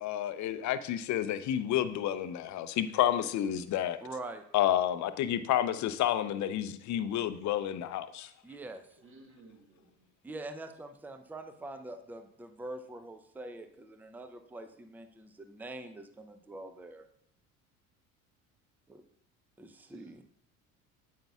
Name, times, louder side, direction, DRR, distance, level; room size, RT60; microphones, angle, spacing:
voice 1, 0.0-4.0 4.5-8.3, left 11 dB, 40° left, 12 dB, 0.6 m, -30 dB
voice 2, 4.0-4.4 8.4-9.0 10.2-17.1 18.9-19.0 19.6-20.2, right 2 dB, 5° right, 8 dB, 0.6 m, -44 dB
voice 3, 9.0-10.1 19.9-20.1, right 2 dB, 30° right, 4 dB, 1.4 m, -57 dB
8.7 x 8.4 x 2.4 m, 0.69 s
hypercardioid pair, 65°, 44 cm